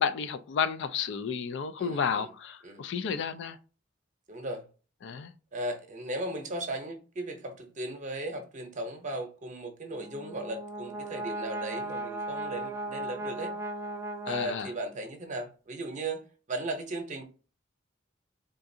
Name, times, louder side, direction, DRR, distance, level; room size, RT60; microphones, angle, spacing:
voice 1, 0.0-3.6 5.0-5.3 14.3-14.7, left 6 dB, 65° left, 0.3 m, -31 dB
voice 2, 1.8-2.3 2.6-2.8 4.3-4.7 5.5-13.5 14.3-16.2 16.5-17.2, right 1 dB, 40° right, 0.7 m, -36 dB
Brass instrument, 9.9-15.0, right 2 dB, 15° right, 0.3 m, -37 dB
3.8 x 2.4 x 2.6 m
head